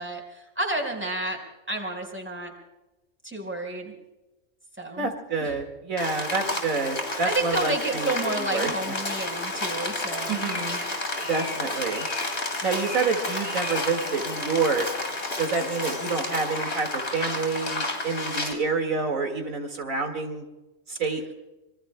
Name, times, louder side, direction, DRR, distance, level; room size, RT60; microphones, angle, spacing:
voice 1, 0.0-1.4 1.7-2.5 3.2-3.9 4.8-5.1 5.4-5.5 7.2-10.4, right 2 dB, 10° right, 0 dB, 4.6 m, -30 dB
voice 2, 5.0-8.1 8.4-8.7 10.3-10.8 11.3-12.1 12.6-14.9 15.4-20.4 20.9-21.2, right 4 dB, 70° right, 2 dB, 2.4 m, -28 dB
Rain, 6.0-18.5, left 2 dB, 50° left, 3.1 m, -31 dB
26.5 x 24.5 x 2.2 m, 1.0 s
omnidirectional pair, 1.5 m